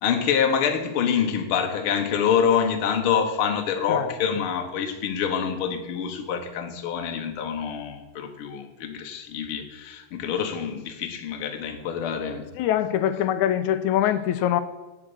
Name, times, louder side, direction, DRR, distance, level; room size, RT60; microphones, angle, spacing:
voice 1, 0.0-12.5, left 7 dB, 55° left, 4 dB, 1.8 m, -26 dB
voice 2, 12.6-14.6, left 11 dB, 90° left, 10 dB, 2.1 m, -23 dB
9.2 x 7.2 x 8.1 m, 1.2 s
omnidirectional pair, 3.4 m